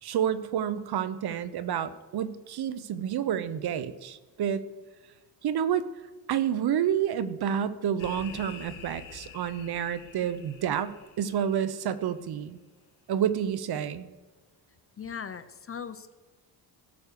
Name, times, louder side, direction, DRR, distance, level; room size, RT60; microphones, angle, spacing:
voice 1, 0.0-4.6 5.4-5.8 6.3-12.6 13.1-14.1, right 9 dB, 55° right, 13 dB, 0.9 m, -29 dB
sound 1, 8.0-11.9, left 7 dB, 75° left, 1.9 m, -47 dB
voice 2, 15.0-16.1, left 7 dB, 30° left, 12 dB, 0.6 m, -39 dB
17.0 x 6.1 x 6.8 m, 1.3 s
cardioid pair, 105°, 47 cm